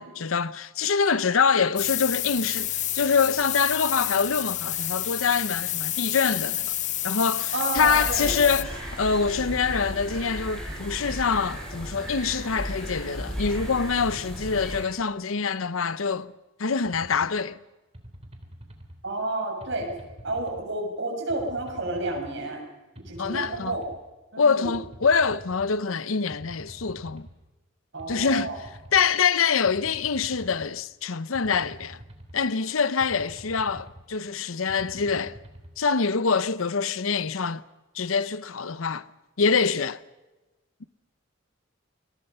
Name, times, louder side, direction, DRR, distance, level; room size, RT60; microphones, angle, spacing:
voice 1, 0.0-6.7 7.0-16.3 16.6-17.6 23.2-23.8 24.4-27.3 28.1-32.0 32.3-35.4 35.8-37.6 37.9-39.0 39.4-40.0, left 5 dB, 85° left, 0.8 m, -25 dB
sound 1, 1.8-8.6, left 13 dB, 35° left, 0.7 m, -29 dB
voice 2, 7.5-8.3 19.0-19.9 20.2-22.6 23.1-23.8 24.3-24.7 27.9-28.6, right 2 dB, 60° right, 7.0 m, -30 dB
sound 2, 7.7-14.8, equal, 5° left, 6.9 m, -35 dB
sound 3, 16.8-17.3 17.9-19.0 19.6-20.6 21.3-22.3 23.0-24.0 24.6-25.7 26.3-27.3 28.0-29.0 29.7-30.7 31.3-32.4 33.0-34.0 34.7-35.7, equal, 30° right, 3.4 m, -45 dB
28.0 x 22.0 x 5.6 m
head